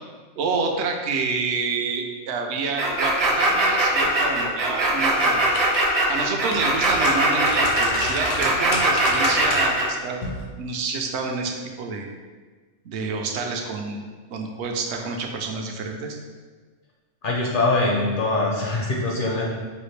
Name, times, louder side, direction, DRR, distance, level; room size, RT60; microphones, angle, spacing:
voice 1, 0.4-5.4 6.1-10.3 10.6-12.1 12.8-14.0 14.3-16.2, right 4 dB, 70° right, 3 dB, 0.8 m, -28 dB
sound 1, 2.8-9.9, right 2 dB, 40° right, 0.6 m, -21 dB
sound 2, 5.0-6.0 6.4-9.8 10.2-10.4, left 2 dB, 80° left, 1.1 m, -30 dB
voice 2, 17.2-19.5, left 2 dB, 55° left, -3 dB, 0.7 m, -23 dB
5.6 x 2.5 x 3.2 m, 1.4 s
omnidirectional pair, 1.3 m